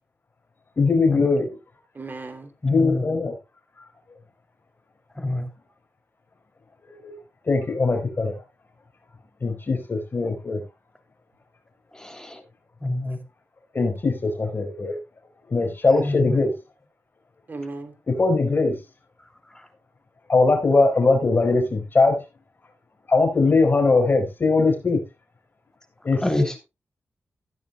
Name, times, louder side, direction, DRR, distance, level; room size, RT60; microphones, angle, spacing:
voice 1, 0.8-1.5 2.6-3.3 6.9-7.2 7.5-8.3 9.4-10.6 13.7-15.0 15.5-16.5 18.1-18.8 20.3-22.2 23.1-25.0 26.0-26.2, left 3 dB, 45° left, 4 dB, 4.3 m, -20 dB
voice 2, 1.9-2.5 13.1-13.2 17.5-17.9, right 3 dB, 40° right, 6 dB, 2.9 m, -36 dB
voice 3, 2.6-3.1 5.2-5.5 11.9-12.4 12.8-13.2 16.0-16.4 26.2-26.6, left 2 dB, 15° left, 6 dB, 3.0 m, -26 dB
15.0 x 11.0 x 2.3 m, 0.26 s
cardioid pair, 70°, 5 cm